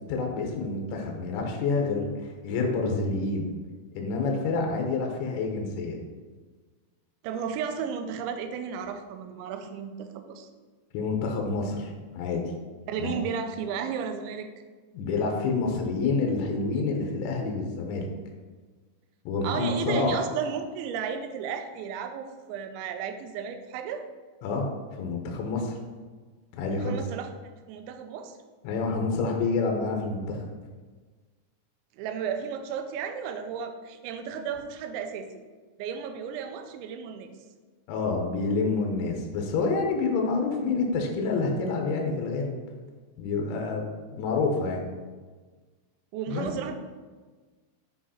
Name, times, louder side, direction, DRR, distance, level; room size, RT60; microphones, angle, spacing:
voice 1, 0.1-3.5 3.9-6.0 10.9-12.4 13.0-13.2 14.9-18.1 19.3-20.2 24.4-24.7 25.0-25.8 26.5-27.0 28.6-30.4 37.9-42.5 43.2-44.8 46.3-46.5, left 3 dB, 75° left, 2 dB, 3.5 m, -28 dB
voice 2, 7.2-10.5 12.9-14.5 19.4-24.0 26.7-27.3 27.7-28.4 32.0-35.3 35.8-37.3 46.1-46.8, right 7 dB, 80° right, 7 dB, 2.8 m, -34 dB
10.0 x 4.9 x 4.3 m, 1.4 s
omnidirectional pair, 5.6 m